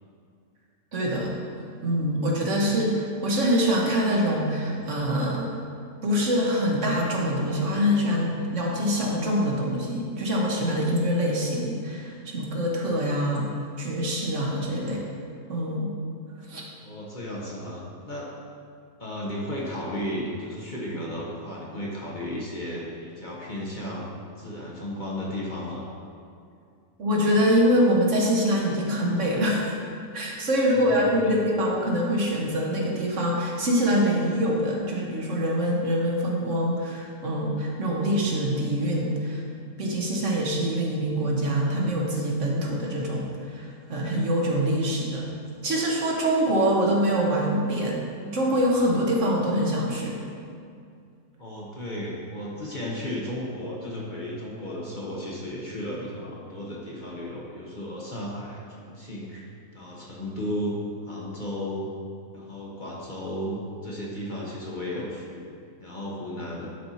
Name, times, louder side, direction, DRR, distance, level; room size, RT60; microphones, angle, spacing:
voice 1, 0.9-1.3 1.8-5.5 6.0-13.5 13.8-15.0 15.5-15.9 16.5-16.6 27.0-29.8 30.1-39.4 39.8-45.3 45.6-50.2, equal, 55° right, -2 dB, 1.3 m, -24 dB
voice 2, 16.8-18.3 19.0-24.0 24.4-25.8 30.7-31.3 51.4-60.7 61.0-61.9 62.3-63.6 63.8-65.5 65.8-66.7, left 1 dB, 35° left, -5 dB, 1.1 m, -34 dB
11.0 x 4.3 x 4.2 m, 2.4 s
omnidirectional pair, 1.6 m